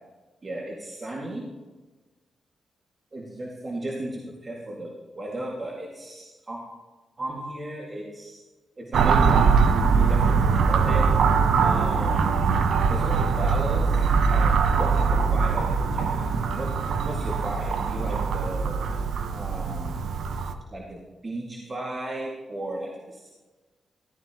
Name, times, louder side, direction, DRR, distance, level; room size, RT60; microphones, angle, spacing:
voice 1, 0.4-1.5 3.1-6.6 7.2-8.4 8.8-11.1 11.6-12.4 12.9-16.7 17.0-18.8 19.3-19.9 20.7-23.3, right 1 dB, 40° right, -3 dB, 2.1 m, -35 dB
sound 1, 8.9-20.5, right 5 dB, 80° right, 0.8 m, -22 dB
15.0 x 12.5 x 3.0 m, 1.2 s
cardioid pair, 60°, 0 cm